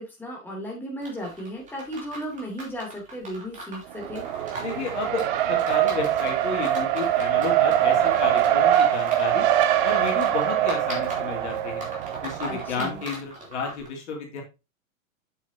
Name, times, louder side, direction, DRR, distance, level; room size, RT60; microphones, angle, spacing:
voice 1, 0.0-4.3 12.5-13.0, equal, 5° left, -2 dB, 2.9 m, -35 dB
Plastic rustle, 1.0-13.9, right 1 dB, 20° right, 3.2 m, -40 dB
Race car auto racing, 3.9-13.0, right 11 dB, 40° right, 0.8 m, -23 dB
voice 2, 4.6-9.5 9.8-11.9 12.2-14.4, left 4 dB, 55° left, 1 dB, 2.6 m, -32 dB
8.4 x 7.1 x 2.8 m, 0.26 s
figure-of-eight pair, 100°, 42 cm